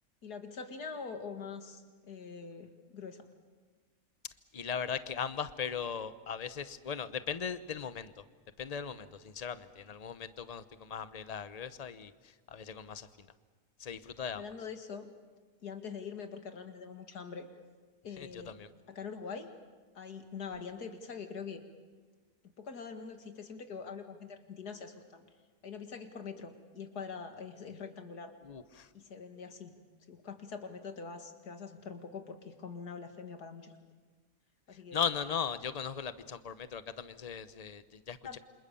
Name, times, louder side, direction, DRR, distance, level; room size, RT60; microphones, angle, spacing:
voice 1, 0.2-3.3 14.3-15.1 15.6-17.5 18.0-18.6 18.9-19.5 19.9-21.6 22.6-25.2 25.6-28.3 28.9-29.8 30.1-33.9 34.7-35.0 38.2-38.4, left 5 dB, 75° left, 7 dB, 2.5 m, -44 dB
voice 2, 4.5-8.2 8.6-13.1 13.8-14.4 18.2-18.7 28.4-28.9 34.9-38.4, left 7 dB, 30° left, 13 dB, 0.8 m, -38 dB
28.0 x 26.5 x 7.1 m, 1.4 s
omnidirectional pair, 1.7 m